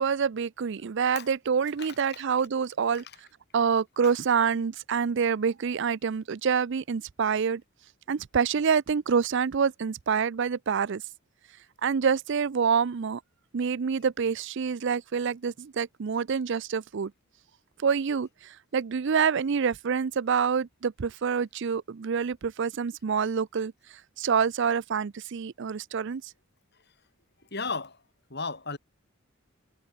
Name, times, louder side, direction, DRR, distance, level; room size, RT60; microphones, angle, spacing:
voice 1, 0.0-3.0 3.5-7.6 8.1-11.0 11.8-13.2 13.5-17.1 17.8-23.7 24.2-26.2, right 6 dB, 55° right, 0.4 m, -27 dB
voice 2, 1.8-2.2 4.0-4.1 27.5-28.0 28.3-28.8, left 4 dB, 50° left, 4.4 m, -34 dB
head